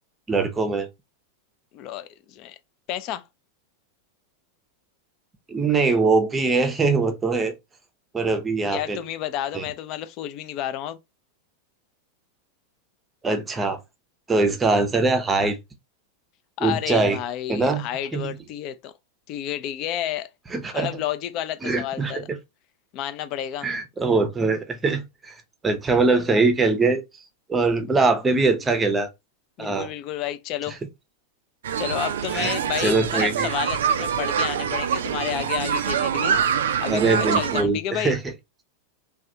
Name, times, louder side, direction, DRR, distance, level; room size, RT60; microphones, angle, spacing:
voice 1, 0.3-0.9 5.5-7.5 8.1-9.0 9.5-9.6 13.2-13.8 14.3-15.6 16.6-17.2 17.5-17.8 18.1-18.3 20.5-20.9 21.6-22.2 23.6-25.3 25.6-27.0 27.5-29.1 29.6-29.9 32.3-33.5 36.9-38.2, right 3 dB, 15° right, 0.6 m, -22 dB
voice 2, 1.7-2.6 2.9-3.2 8.7-11.0 16.6-18.9 19.3-20.3 20.7-22.3 22.9-23.7 29.6-30.8 31.8-36.4 36.8-38.1, left 11 dB, 40° left, 0.4 m, -30 dB
sound 1, 31.6-37.6, right 8 dB, 60° right, 0.3 m, -25 dB
3.2 x 2.3 x 2.7 m
figure-of-eight pair, 90°, 0 cm